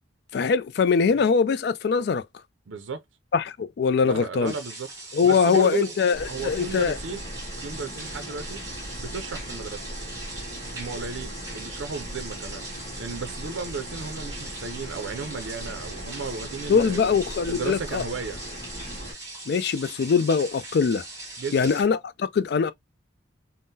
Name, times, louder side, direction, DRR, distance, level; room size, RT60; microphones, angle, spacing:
voice 1, 0.3-2.2 3.3-4.5 5.1-7.0 16.7-18.0 19.5-21.0 21.5-22.7, left 5 dB, 55° left, 0.3 m, -22 dB
voice 2, 2.7-3.0 4.0-4.9 5.2-6.0 6.2-7.2 7.6-8.6 9.0-9.8 10.7-12.6 13.0-17.1 17.5-18.4 21.4-21.7, right 5 dB, 75° right, 0.5 m, -34 dB
sound 1, 4.4-21.8, right 2 dB, 15° right, 1.0 m, -40 dB
sound 2, 6.1-19.1, equal, 30° left, 1.2 m, -39 dB
3.6 x 2.0 x 2.6 m
head